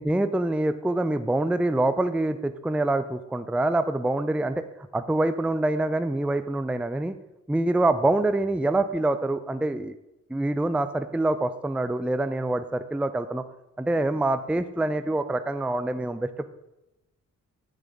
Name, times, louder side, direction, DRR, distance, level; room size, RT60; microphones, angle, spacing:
voice 1, 0.0-4.6 4.9-7.2 7.5-9.9 10.3-13.4 13.8-16.5, right 2 dB, 5° right, 11 dB, 0.4 m, -25 dB
8.3 x 6.6 x 5.2 m, 0.93 s
cardioid pair, 80°, 30 cm